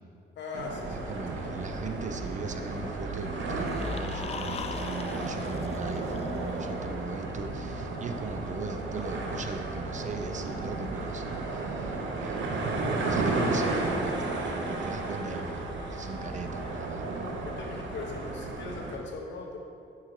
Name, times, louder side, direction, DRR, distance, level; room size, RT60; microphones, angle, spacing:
voice 1, 0.4-1.1 17.6-19.6, left 3 dB, 65° left, 1 dB, 1.0 m, -39 dB
sound 1, 0.5-19.0, right 2 dB, 70° right, 0.8 m, -33 dB
sound 2, 0.8-16.6, left 1 dB, 15° left, 1.5 m, -51 dB
voice 2, 0.9-12.5 13.1-17.1, right 4 dB, 40° right, 6 dB, 0.5 m, -39 dB
sound 3, 3.5-6.7, left 6 dB, 30° left, 0.3 m, -41 dB
6.2 x 4.9 x 4.3 m, 2.5 s
cardioid pair, 90°, 20 cm